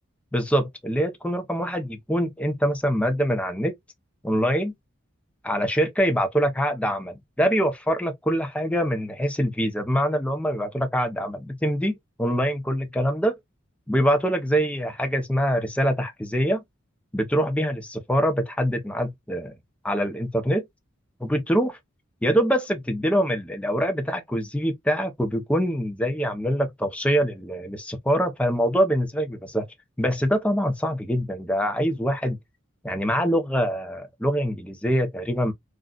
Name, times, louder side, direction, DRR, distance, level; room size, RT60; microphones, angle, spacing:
voice 1, 0.3-3.7 4.2-4.7 5.4-13.3 13.9-16.6 17.1-19.5 19.8-20.7 21.2-21.8 22.2-29.7 30.0-32.4 32.8-35.5, equal, 5° left, 0.6 m, -24 dB
3.8 x 2.3 x 2.3 m
head